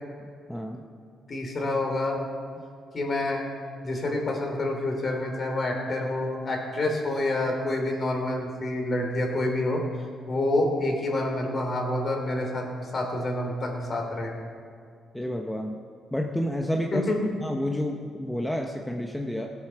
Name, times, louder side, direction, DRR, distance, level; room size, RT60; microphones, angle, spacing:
voice 1, 0.5-0.8 15.1-15.8 16.1-17.1 17.4-19.5, equal, 5° left, 1 dB, 0.9 m, -30 dB
voice 2, 1.3-2.2 2.9-3.4 3.8-9.8 10.3-14.3 16.9-17.2, left 2 dB, 40° left, 1 dB, 3.3 m, -28 dB
18.0 x 8.4 x 5.9 m, 2.3 s
cardioid pair, 90°, 0 cm